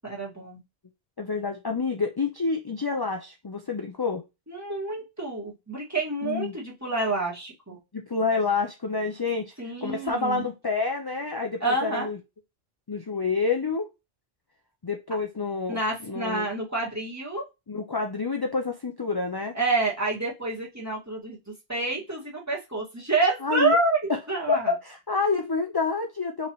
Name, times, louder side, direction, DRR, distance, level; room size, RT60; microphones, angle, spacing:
voice 1, 0.0-0.6 4.5-7.8 9.6-10.5 11.6-12.1 15.7-17.5 19.5-24.7, right 2 dB, 15° right, -4 dB, 1.7 m, -28 dB
voice 2, 1.2-4.2 6.2-6.5 7.9-9.5 9.8-12.2 12.9-13.9 14.8-16.5 17.7-19.5 23.4-23.8 24.5-24.6 24.8-26.5, left 4 dB, 35° left, 3 dB, 0.4 m, -28 dB
5.1 x 3.1 x 3.0 m, 0.24 s
omnidirectional pair, 1.2 m